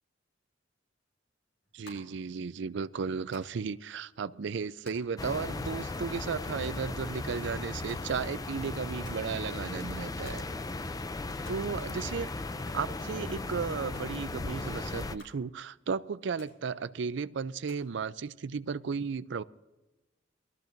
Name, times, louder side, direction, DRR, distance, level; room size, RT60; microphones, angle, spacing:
sound 1, 1.6-17.9, left 1 dB, 70° left, 6.1 m, -60 dB
voice 1, 1.7-10.4 11.5-12.3 12.7-19.4, right 5 dB, 65° right, 15 dB, 0.4 m, -34 dB
sound 2, 5.2-15.1, left 2 dB, 20° left, 0.4 m, -37 dB
22.0 x 13.5 x 2.6 m, 1.1 s
head